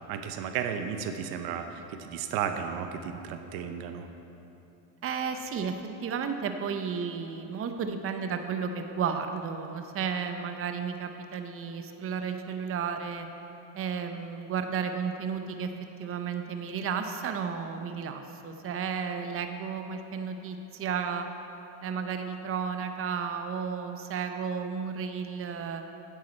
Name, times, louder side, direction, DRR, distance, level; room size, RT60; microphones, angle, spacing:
voice 1, 0.0-4.1, right 7 dB, 75° right, 7 dB, 0.8 m, -34 dB
voice 2, 5.0-5.8 6.0-13.3 13.7-15.7 16.0-21.3 21.8-25.8, right 6 dB, 35° right, 7 dB, 0.7 m, -33 dB
9.6 x 8.5 x 4.3 m, 2.9 s
supercardioid pair, 95°, 39 cm